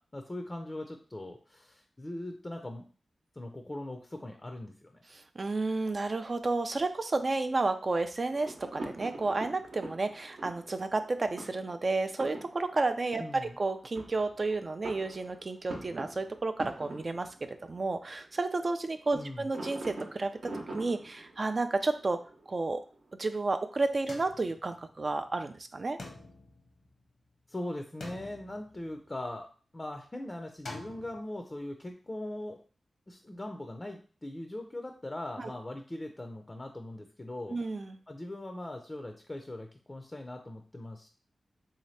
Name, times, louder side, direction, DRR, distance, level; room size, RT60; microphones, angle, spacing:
voice 1, 0.0-2.8 3.4-5.0 13.2-13.5 19.1-19.5 27.5-32.6 33.1-37.6 38.1-41.1, left 1 dB, 30° left, 4 dB, 0.4 m, -40 dB
voice 2, 5.1-22.2 22.5-22.8 23.2-26.0 35.4-35.5 37.5-38.0, right 3 dB, 45° right, 7 dB, 0.3 m, -31 dB
sound 1, 8.3-18.6 19.5-23.1, right 2 dB, 75° right, 0.8 m, -44 dB
sound 2, 24.1-25.3 26.0-27.4 28.0-29.4 30.7-31.2, left 2 dB, 75° left, 0.9 m, -47 dB
3.3 x 2.8 x 3.1 m, 0.40 s
cardioid pair, 65°, 0 cm